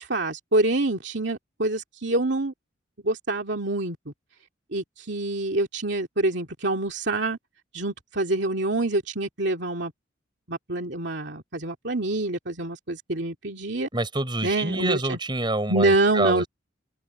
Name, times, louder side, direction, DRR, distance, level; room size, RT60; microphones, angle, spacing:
voice 1, 0.0-2.5 3.0-4.0 4.7-7.4 7.7-9.9 10.5-13.9 14.4-15.2 15.7-16.4, right 2 dB, 60° right, 2.7 m, -26 dB
voice 2, 13.9-16.5, right 2 dB, 25° right, 6.7 m, -27 dB
head